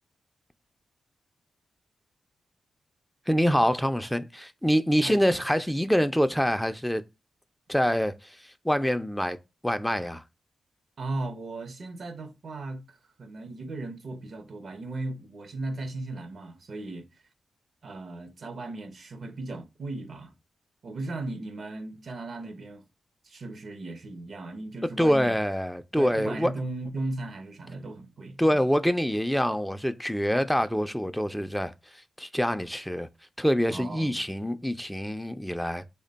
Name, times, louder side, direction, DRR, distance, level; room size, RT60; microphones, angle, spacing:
voice 1, 3.3-7.0 7.7-8.4 8.6-9.4 9.6-10.2 25.0-26.5 28.4-31.7 32.2-33.1 33.4-35.9, equal, 5° left, 0.3 m, -25 dB
voice 2, 11.0-17.0 17.8-20.3 20.8-22.8 23.2-25.4 26.0-28.6 33.7-34.2, right 2 dB, 60° right, 0.6 m, -37 dB
3.2 x 2.2 x 3.8 m
cardioid pair, 50°, 0 cm